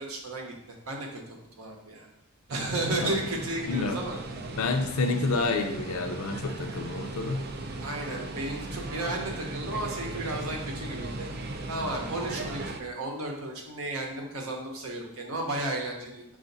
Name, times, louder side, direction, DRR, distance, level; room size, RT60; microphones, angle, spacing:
voice 1, 0.0-2.1 2.5-4.2 7.8-11.3 11.7-16.2, right 2 dB, 85° right, 1 dB, 0.9 m, -33 dB
sound 1, 2.5-12.8, right 2 dB, 45° right, 0.4 m, -37 dB
voice 2, 3.7-4.0 4.6-7.4, left 3 dB, 75° left, 5 dB, 0.5 m, -29 dB
4.9 x 2.5 x 3.9 m, 0.86 s
head